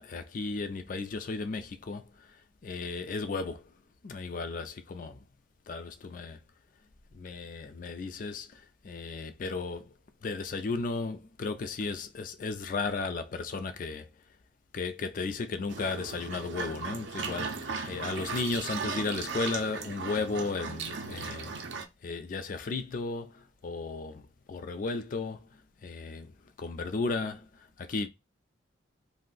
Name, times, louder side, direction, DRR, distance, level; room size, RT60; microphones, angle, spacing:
voice 1, 0.0-2.0 2.6-3.7 4.0-5.2 5.7-6.4 7.1-9.9 10.2-14.1 14.7-21.5 22.0-24.2 24.5-25.5 25.8-26.3 26.6-27.5 27.8-28.1, left 3 dB, 45° left, 0.4 m, -34 dB
sound 1, 15.7-21.8, right 5 dB, 65° right, 0.5 m, -37 dB
2.5 x 2.1 x 3.8 m
head